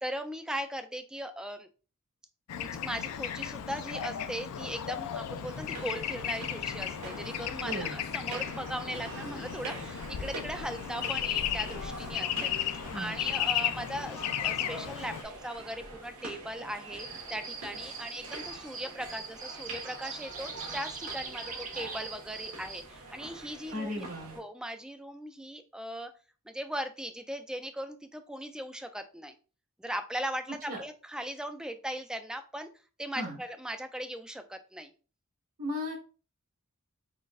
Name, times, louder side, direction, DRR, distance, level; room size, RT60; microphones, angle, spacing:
voice 1, 0.0-1.7 2.5-24.0 24.4-26.1 26.5-29.3 29.8-32.7 33.0-34.9, equal, 5° right, 8 dB, 0.3 m, -39 dB
Bird / Traffic noise roadway noise, 2.5-15.2, left 10 dB, 85° left, 0.4 m, -35 dB
sound 1, 5.4-24.4, right 2 dB, 90° right, 1.4 m, -45 dB
voice 2, 7.6-8.0 12.9-13.3 23.7-24.4 30.7-30.8 33.1-33.4 35.6-36.0, left 1 dB, 60° right, 0 dB, 1.4 m, -36 dB
sound 2, 17.0-22.8, right 4 dB, 35° right, 0.7 m, -42 dB
4.0 x 3.7 x 2.4 m, 0.36 s
head